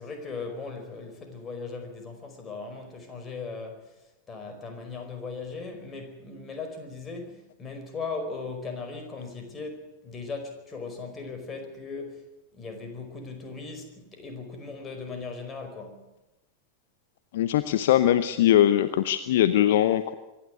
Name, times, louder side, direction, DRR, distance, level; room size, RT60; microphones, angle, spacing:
voice 1, 0.0-3.9 4.3-12.2 12.5-16.0, left 4 dB, 20° left, 4.8 m, -38 dB
voice 2, 17.3-20.1, left 12 dB, 55° left, 0.8 m, -21 dB
24.5 x 11.5 x 9.7 m
figure-of-eight pair, 90°, 0 cm